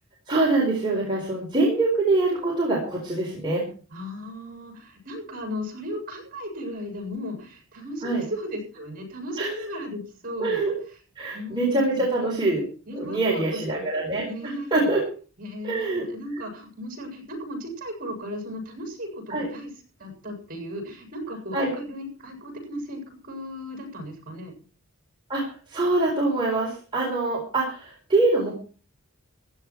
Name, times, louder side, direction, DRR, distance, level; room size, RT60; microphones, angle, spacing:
voice 1, 0.3-3.6 8.0-8.2 9.4-9.5 10.4-10.7 11.2-12.6 12.9-14.2 14.7-15.0 15.6-16.0 19.3-19.5 21.5-21.7 25.3-28.5, right 2 dB, 20° right, -4 dB, 4.3 m, -24 dB
voice 2, 3.9-10.6 11.3-12.0 12.9-13.9 14.2-14.9 15.4-19.7 20.0-24.5, equal, 40° right, 3 dB, 7.6 m, -36 dB
15.5 x 12.0 x 4.7 m, 0.39 s
head